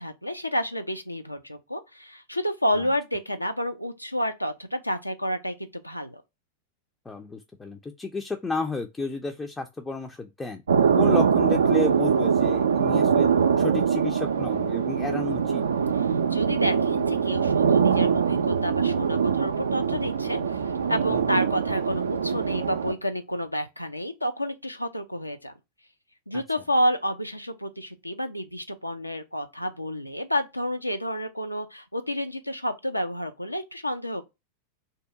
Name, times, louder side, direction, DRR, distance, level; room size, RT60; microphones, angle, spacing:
voice 1, 0.0-6.2 16.3-25.5 26.3-34.2, equal, 85° left, 0.4 m, -30 dB
voice 2, 7.1-10.6 10.9-13.3 13.6-15.6 21.1-21.4 26.3-26.4, left 4 dB, 10° left, 0.4 m, -32 dB
sound 1, 10.7-22.9, right 6 dB, 70° right, 0.3 m, -23 dB
2.7 x 2.2 x 3.6 m
figure-of-eight pair, 90°, 0 cm